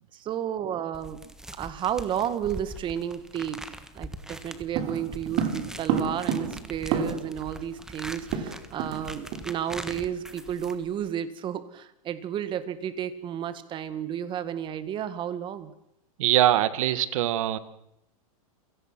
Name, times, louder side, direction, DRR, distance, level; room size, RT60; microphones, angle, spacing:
voice 1, 0.1-1.2 1.5-15.7, right 9 dB, 25° right, 13 dB, 1.8 m, -32 dB
sound 1, 0.9-11.1, right 1 dB, 5° right, 1.4 m, -42 dB
sound 2, 4.7-7.4 7.7-7.8 8.0-9.0 9.3-9.5 9.9-10.1, right 7 dB, 45° right, 3.7 m, -29 dB
voice 2, 16.2-17.6, right 13 dB, 65° right, 14 dB, 1.8 m, -22 dB
28.5 x 17.5 x 6.1 m, 0.81 s
supercardioid pair, 145°, 18 cm